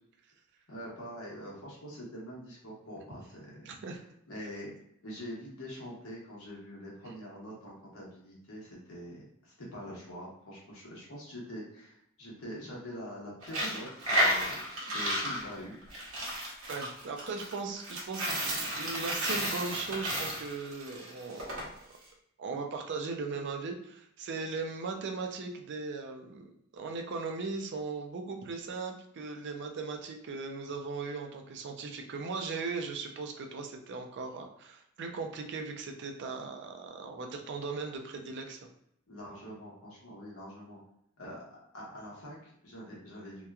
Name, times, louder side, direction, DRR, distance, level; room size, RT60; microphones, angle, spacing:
voice 1, 0.7-3.7 4.3-4.7 5.0-15.7 39.1-40.8 41.2-43.5, equal, 75° left, -4 dB, 1.0 m, -44 dB
voice 2, 3.7-4.0 16.7-21.6 22.4-38.6, right 4 dB, 55° right, 4 dB, 0.4 m, -38 dB
Coin (dropping), 13.4-21.6, equal, 85° right, 0.9 m, -32 dB
2.8 x 2.2 x 2.3 m, 0.75 s
head